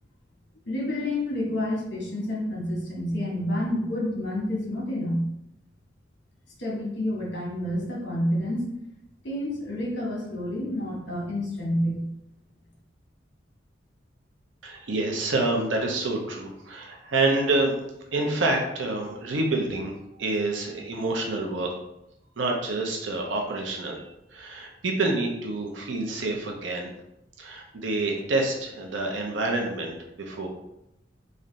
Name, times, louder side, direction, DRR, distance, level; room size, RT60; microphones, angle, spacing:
voice 1, 0.7-5.2 6.6-8.7 9.2-12.0, left 1 dB, 65° left, -2 dB, 1.3 m, -29 dB
voice 2, 14.6-17.8 18.1-19.9 20.2-21.7 22.4-24.1 24.3-26.9 27.4-30.5, right 2 dB, 85° right, 1 dB, 0.7 m, -27 dB
3.3 x 2.5 x 3.9 m, 0.84 s
head